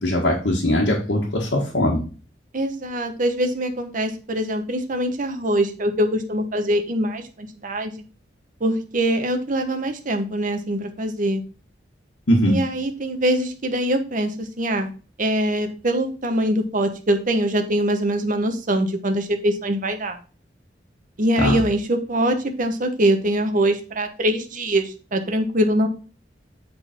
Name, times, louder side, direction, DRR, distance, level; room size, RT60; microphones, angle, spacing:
voice 1, 0.0-2.0 12.3-12.6 21.4-21.6, left 1 dB, 80° left, -3 dB, 1.5 m, -20 dB
voice 2, 2.5-7.9 8.6-11.4 12.5-14.9 15.2-20.2 21.2-25.9, right 1 dB, 50° right, 6 dB, 1.0 m, -23 dB
8.1 x 4.0 x 4.3 m, 0.37 s
head